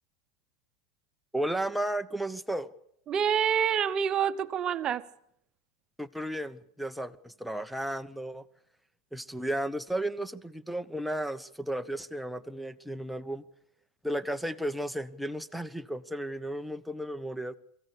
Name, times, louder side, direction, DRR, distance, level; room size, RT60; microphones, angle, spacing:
voice 1, 1.3-2.7 6.0-8.4 9.1-13.4 14.0-17.6, right 1 dB, ahead, 1.1 m, -34 dB
voice 2, 3.1-5.1, right 8 dB, 35° right, 1.1 m, -27 dB
23.0 x 16.0 x 8.4 m
hypercardioid pair, 110°, 2 cm